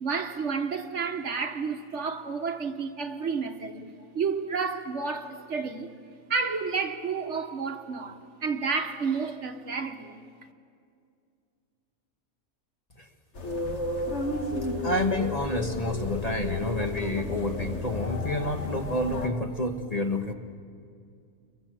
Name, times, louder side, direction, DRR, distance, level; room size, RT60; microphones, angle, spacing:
voice 1, 0.0-3.9 4.1-5.9 6.3-10.2, right 5 dB, 55° right, 1.5 m, -31 dB
sound 1, 13.4-19.3, left 2 dB, 55° left, 1.9 m, -32 dB
voice 2, 14.8-20.3, left 1 dB, 30° left, 1.3 m, -29 dB
29.0 x 23.0 x 7.6 m
omnidirectional pair, 1.5 m